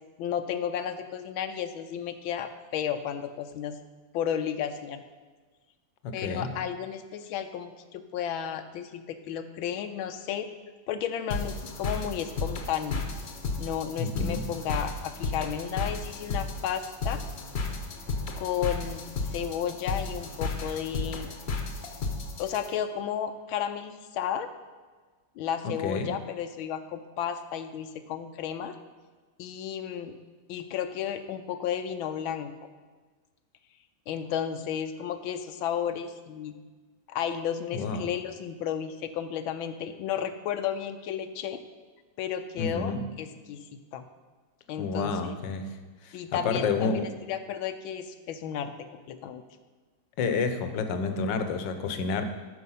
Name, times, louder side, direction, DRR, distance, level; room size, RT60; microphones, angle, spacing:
voice 1, 0.2-3.8 4.1-5.0 6.1-10.5 10.9-13.0 13.6-17.2 18.4-21.3 22.4-24.5 25.4-28.8 29.4-30.2 30.5-32.5 34.1-36.5 37.1-41.6 42.2-44.1 44.7-45.4 46.1-48.7 49.1-49.4, left 9 dB, 90° left, 8 dB, 1.5 m, -33 dB
voice 2, 6.0-6.5 14.0-14.5 25.6-26.1 37.7-38.1 42.6-43.0 44.8-45.7 46.0-47.0 50.2-52.2, left 4 dB, 75° left, 9 dB, 1.5 m, -29 dB
sound 1, 11.3-22.7, left 3 dB, 45° left, 1.0 m, -33 dB
9.6 x 6.7 x 5.5 m, 1.4 s
omnidirectional pair, 2.1 m